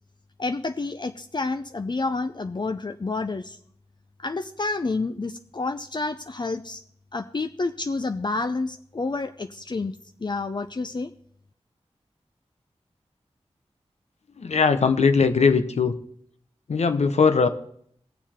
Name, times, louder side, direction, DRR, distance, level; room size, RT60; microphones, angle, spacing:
voice 1, 0.4-3.6 4.2-6.8 7.1-10.0 10.2-11.1, left 3 dB, 40° left, 8 dB, 0.6 m, -29 dB
voice 2, 14.4-15.9 16.7-17.5, left 5 dB, 80° left, 10 dB, 1.0 m, -20 dB
18.5 x 7.1 x 4.4 m, 0.67 s
cardioid pair, 50°, 11 cm